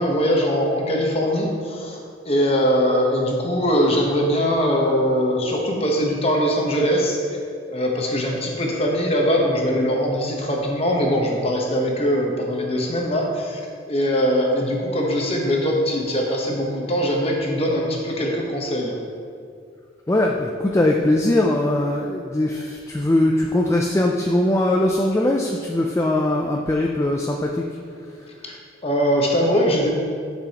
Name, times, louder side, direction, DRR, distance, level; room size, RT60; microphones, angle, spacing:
voice 1, 0.0-2.0 2.2-7.2 7.7-13.6 13.9-19.0 28.4-28.6 28.8-29.9, equal, 30° left, -1 dB, 1.0 m, -21 dB
voice 2, 20.1-28.6, left 1 dB, 15° left, 0 dB, 0.3 m, -21 dB
10.0 x 6.1 x 2.9 m, 2.3 s
head